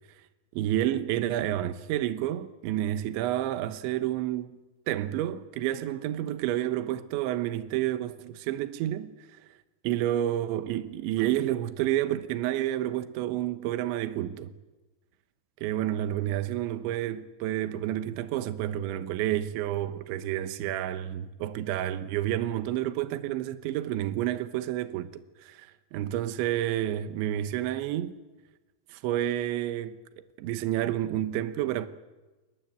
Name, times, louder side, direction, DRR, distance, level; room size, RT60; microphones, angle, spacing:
voice 1, 0.5-4.6 4.9-9.1 9.8-14.5 15.6-28.2 28.9-30.0 30.4-31.9, right 12 dB, 80° right, 3.4 m, -30 dB
28.5 x 22.5 x 8.0 m
omnidirectional pair, 5.3 m